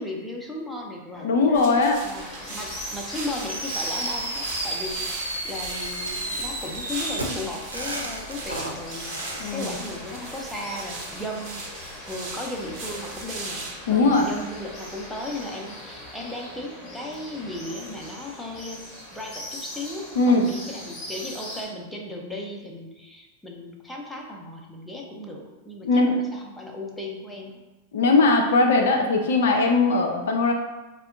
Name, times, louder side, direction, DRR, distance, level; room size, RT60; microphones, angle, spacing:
voice 1, 0.0-1.7 2.0-9.2 9.5-27.6, left 1 dB, 5° left, -1 dB, 0.5 m, -36 dB
voice 2, 1.2-2.0 9.4-9.8 13.9-14.3 20.2-20.5 25.8-26.2 27.9-30.5, left 3 dB, 60° left, 2 dB, 0.4 m, -20 dB
sound 1, 1.5-13.7, right 2 dB, 30° right, 1.0 m, -38 dB
sound 2, 2.1-21.7, left 1 dB, 25° left, 0.9 m, -40 dB
Fireworks, 3.5-9.5, right 2 dB, 85° right, 0.5 m, -32 dB
4.2 x 2.2 x 2.4 m, 1.1 s
figure-of-eight pair, 90°, 0 cm